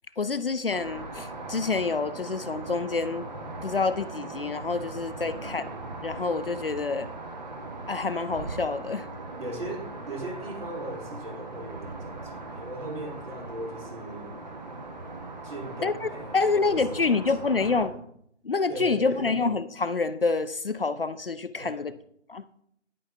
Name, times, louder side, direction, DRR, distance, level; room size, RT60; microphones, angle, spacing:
voice 1, 0.2-3.3 3.6-5.7 6.0-7.1 7.9-9.1 15.8-17.9 18.4-21.9 22.3-22.4, left 4 dB, 50° left, 13 dB, 0.5 m, -27 dB
sound 1, 0.7-17.9, right 2 dB, 35° right, 1.4 m, -39 dB
voice 2, 5.2-5.5 9.4-14.3 15.4-17.9 18.7-19.3 21.6-21.8, right 1 dB, 50° right, 1 dB, 3.3 m, -39 dB
10.5 x 8.9 x 3.5 m, 0.70 s
figure-of-eight pair, 155°, 36 cm